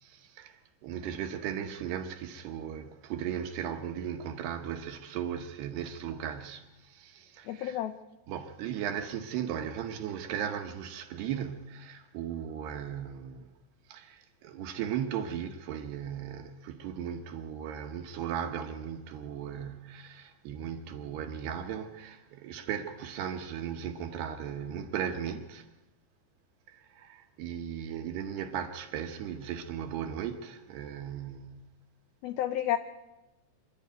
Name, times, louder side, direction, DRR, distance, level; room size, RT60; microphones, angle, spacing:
voice 1, 0.0-7.8 8.3-13.5 13.9-25.7 26.7-31.7, right 9 dB, 70° right, 2.9 m, -37 dB
voice 2, 7.5-7.9 32.2-32.8, left 12 dB, 85° left, 2.1 m, -30 dB
26.0 x 11.5 x 9.3 m
omnidirectional pair, 5.4 m